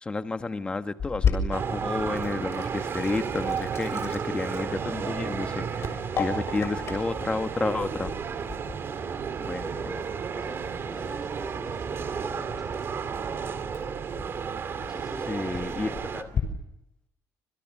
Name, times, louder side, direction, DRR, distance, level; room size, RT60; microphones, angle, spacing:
voice 1, 0.0-8.1 9.4-9.6 15.3-16.3, left 3 dB, 15° left, 1.2 m, -31 dB
Sink (filling or washing), 1.0-16.4, left 5 dB, 40° left, 6.9 m, -36 dB
sound 1, 1.5-16.2, right 6 dB, 35° right, 2.5 m, -33 dB
voice 2, 9.3-10.1 10.3-13.9 14.7-15.8, right 1 dB, 5° right, 3.8 m, -44 dB
28.0 x 27.0 x 7.1 m
cardioid pair, 155°, 7 cm